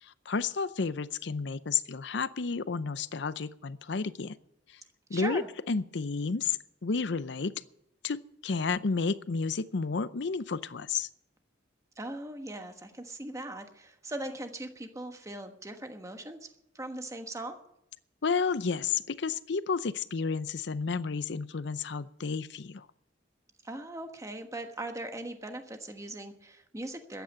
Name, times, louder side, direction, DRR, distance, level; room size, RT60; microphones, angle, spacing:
voice 1, 0.0-4.4 5.1-5.4 5.7-7.6 8.0-11.1 18.2-22.9, left 5 dB, 65° left, 16 dB, 0.6 m, -31 dB
voice 2, 5.1-5.5 12.0-16.5 16.7-17.6 23.6-27.2, right 1 dB, 15° right, 6 dB, 1.3 m, -39 dB
13.5 x 9.2 x 8.6 m, 0.80 s
head